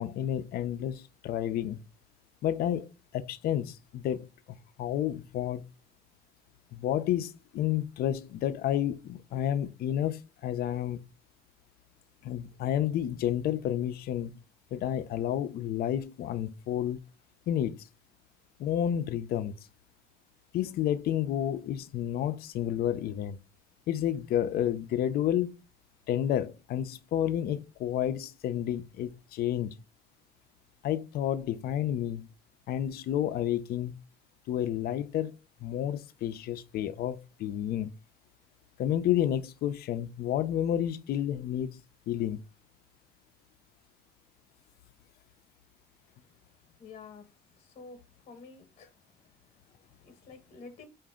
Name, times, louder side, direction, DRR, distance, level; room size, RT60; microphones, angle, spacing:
voice 1, 0.0-1.8 2.4-2.9 3.1-4.3 4.8-5.6 6.7-11.0 12.2-14.3 14.7-17.0 17.5-17.8 18.6-19.6 20.5-23.4 23.9-25.5 26.1-29.7 30.8-32.3 32.7-34.0 34.5-35.3 35.6-37.9 38.8-41.8 42.1-42.4, left 11 dB, 65° left, 0.5 m, -30 dB
voice 2, 46.8-47.2 47.7-48.0 48.3-48.9 50.0-50.9, left 4 dB, 45° left, 1.0 m, -48 dB
4.9 x 2.5 x 3.6 m
cardioid pair, 110°, 17 cm